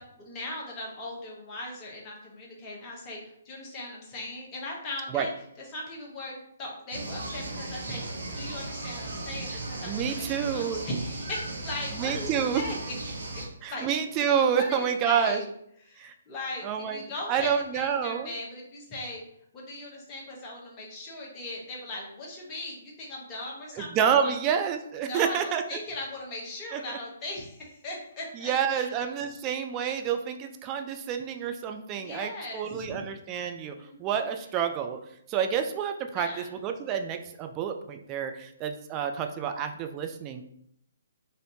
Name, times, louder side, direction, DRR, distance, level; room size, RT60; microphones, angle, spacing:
voice 1, 0.0-5.3 5.6-12.8 13.3-13.9 14.6-15.5 15.8-19.2 19.5-23.9 24.2-24.4 25.0-28.9 32.0-33.0 33.8-34.2 36.1-36.5, left 1 dB, 25° left, -3 dB, 0.9 m, -39 dB
sound 1, 6.9-13.5, right 2 dB, 65° right, 0.6 m, -36 dB
voice 2, 9.9-10.8 11.9-12.6 13.6-15.4 16.0-16.1 16.6-17.0 17.3-18.3 23.8-25.6 26.7-27.0 28.3-33.7 34.0-35.0 35.3-40.5, right 8 dB, 25° right, 6 dB, 0.3 m, -28 dB
3.3 x 2.6 x 2.7 m, 0.71 s
figure-of-eight pair, 130°, 0 cm